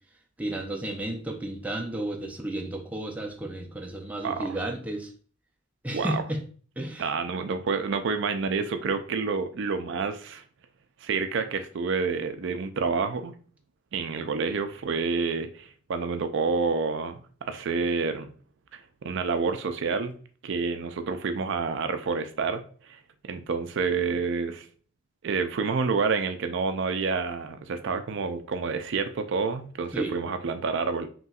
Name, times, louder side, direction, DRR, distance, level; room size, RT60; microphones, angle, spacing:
voice 1, 0.4-5.1 5.8-6.4 6.8-7.1 29.9-30.2, right 1 dB, 5° right, 2 dB, 0.5 m, -32 dB
voice 2, 5.9-6.2 7.0-10.4 11.0-13.3 13.9-18.3 19.0-20.1 20.4-22.6 22.9-23.0 23.2-24.7 25.2-31.1, right 4 dB, 60° right, 8 dB, 0.4 m, -28 dB
5.4 x 3.0 x 2.4 m, 0.43 s
head